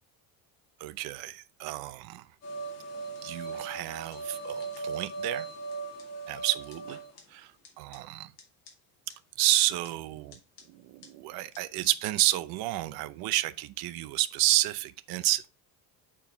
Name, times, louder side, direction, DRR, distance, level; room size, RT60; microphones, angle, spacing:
voice 1, 0.8-2.2 3.2-5.5 6.3-7.0 7.3-7.5 7.8-8.3 9.4-10.4 10.7-15.5, right 16 dB, 70° right, 0.7 m, -30 dB
sound 1, 2.4-7.2 7.6-7.7 7.9-8.0 8.4-8.5 8.7-8.8 9.1-9.2 9.6-9.9 10.3-10.6 11.0-11.1 11.6-11.7 11.8-11.9, right 4 dB, 40° left, 2.2 m, -38 dB
7.3 x 4.6 x 4.5 m
cardioid pair, 170°, 38 cm